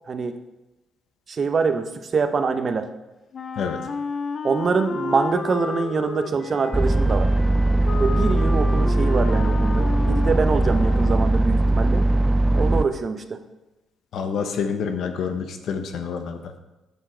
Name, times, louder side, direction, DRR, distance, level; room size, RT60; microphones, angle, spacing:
voice 1, 1.3-2.9 4.4-7.3 8.0-12.0 12.6-13.4, right 5 dB, 40° right, 9 dB, 0.8 m, -24 dB
Wind instrument woodwind instrument, 3.3-11.4, left 5 dB, 45° left, 0.5 m, -32 dB
sound 1, 6.7-12.9, right 2 dB, 10° right, 0.4 m, -20 dB
voice 2, 14.1-16.4, left 6 dB, 70° left, 7 dB, 0.9 m, -27 dB
7.6 x 7.2 x 5.0 m, 1.0 s
cardioid pair, 100°, 0 cm